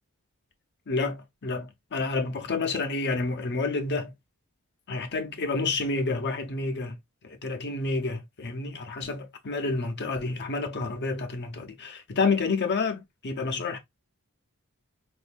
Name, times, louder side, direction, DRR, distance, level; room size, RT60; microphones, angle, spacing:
voice 1, 0.9-4.1 4.9-7.0 7.2-13.8, left 3 dB, 50° left, 0.8 m, -29 dB
4.3 x 2.6 x 2.4 m
head